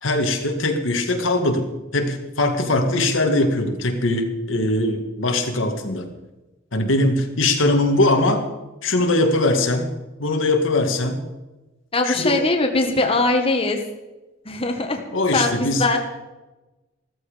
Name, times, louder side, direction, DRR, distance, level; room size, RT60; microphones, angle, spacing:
voice 1, 0.0-6.1 6.7-8.5 8.8-9.9 10.2-11.2 12.0-12.4 15.1-15.8, left 2 dB, 85° left, 4 dB, 2.0 m, -21 dB
voice 2, 11.9-13.8 14.4-15.0 15.3-16.0, left 2 dB, 30° left, 3 dB, 1.6 m, -21 dB
15.0 x 14.0 x 5.2 m, 1.1 s
head